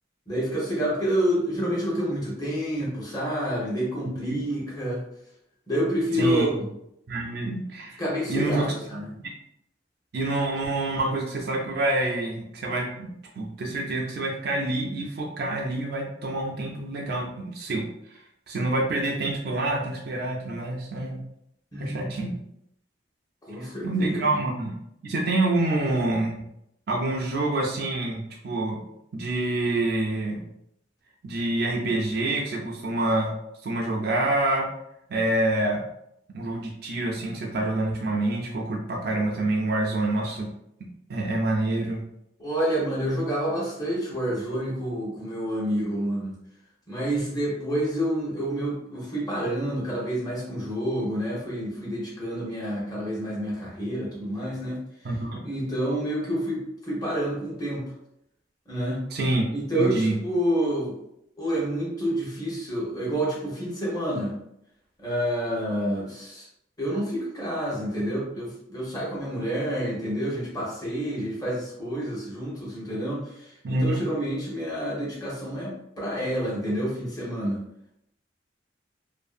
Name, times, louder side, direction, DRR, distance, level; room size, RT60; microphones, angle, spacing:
voice 1, 0.3-5.0 5.7-6.5 8.0-9.1 21.7-22.3 23.5-24.4 42.4-46.4 46.9-54.8 55.4-57.8 58.7-59.1 59.5-60.9 61.4-64.4 65.0-66.5 66.8-73.3 73.7-77.6, equal, 20° left, -5 dB, 0.8 m, -28 dB
voice 2, 4.0-4.4 6.2-6.5 7.1-8.0 8.3-8.7 8.9-9.0 10.1-18.2 18.5-21.2 21.8-22.3 23.6-24.8 25.0-26.4 26.9-28.8 29.1-30.5 31.2-33.3 33.6-34.7 35.1-35.8 36.3-40.5 41.1-42.0 55.0-55.4 59.1-59.4 59.7-60.1 73.6-74.0, right 2 dB, 55° right, -1 dB, 0.4 m, -27 dB
2.6 x 2.5 x 2.4 m, 0.79 s
head